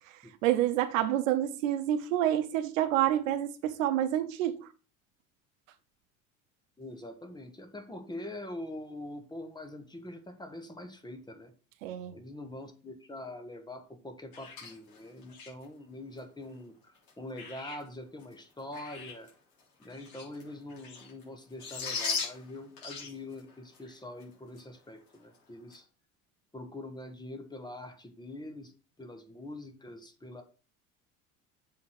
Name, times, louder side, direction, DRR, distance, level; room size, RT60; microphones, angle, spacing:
voice 1, 0.4-4.7 11.8-12.2, right 12 dB, 65° right, 0.8 m, -28 dB
voice 2, 6.8-11.5 12.1-19.3 19.8-25.8 26.5-28.7 29.0-30.4, left 1 dB, 10° left, 1.5 m, -44 dB
sound 1, 14.3-15.6 16.2-16.3 17.0-17.9 18.2-19.3 19.6-21.2 21.5-23.9 24.2-24.3 24.6-24.7 25.1-25.4 25.7-25.8, left 5 dB, 55° left, 3.6 m, -39 dB
7.5 x 4.3 x 5.8 m
figure-of-eight pair, 65°, 42 cm